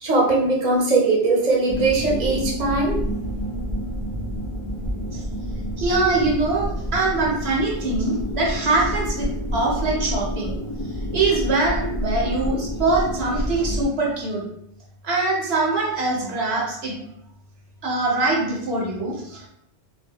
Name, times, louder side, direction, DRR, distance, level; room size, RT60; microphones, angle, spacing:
voice 1, 0.0-3.0, right 3 dB, 45° right, -4 dB, 0.8 m, -20 dB
sound 1, 1.7-13.9, equal, 50° left, 0.4 m, -28 dB
voice 2, 5.8-10.5 11.1-14.4 15.0-16.9 17.8-19.5, right 3 dB, 70° right, -3 dB, 0.9 m, -23 dB
2.2 x 2.2 x 3.5 m, 0.71 s
omnidirectional pair, 1.1 m